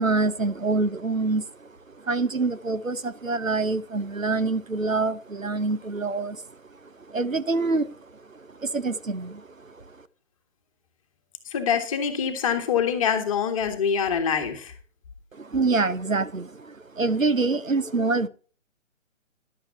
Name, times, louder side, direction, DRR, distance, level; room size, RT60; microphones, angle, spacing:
voice 1, 0.0-10.0 15.3-18.3, right 3 dB, 85° right, 14 dB, 1.0 m, -26 dB
voice 2, 11.5-14.7, left 7 dB, 25° left, 7 dB, 1.5 m, -25 dB
11.5 x 8.7 x 4.2 m, 0.38 s
figure-of-eight pair, 140°, 39 cm